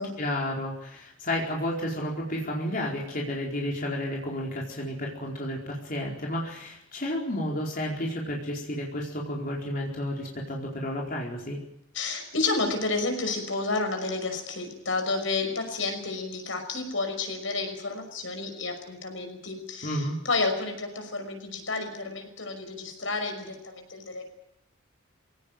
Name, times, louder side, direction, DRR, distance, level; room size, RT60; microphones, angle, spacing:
voice 1, 0.2-11.6 19.8-20.2, left 1 dB, 45° left, -2 dB, 4.6 m, -31 dB
voice 2, 11.9-24.2, left 3 dB, 70° left, 5 dB, 5.8 m, -31 dB
23.5 x 18.0 x 9.2 m, 0.81 s
head